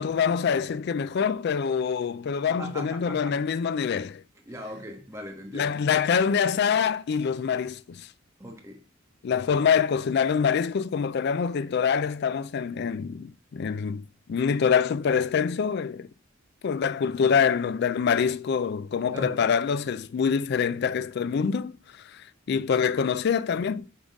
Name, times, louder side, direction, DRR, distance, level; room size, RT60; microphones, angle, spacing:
voice 1, 0.0-4.2 5.5-8.1 9.2-16.1 16.6-23.8, left 6 dB, 55° left, 0.3 m, -25 dB
voice 2, 2.5-3.5 4.5-5.7 8.4-8.8 19.1-19.4, equal, 15° right, 1.2 m, -39 dB
8.9 x 3.8 x 3.5 m
head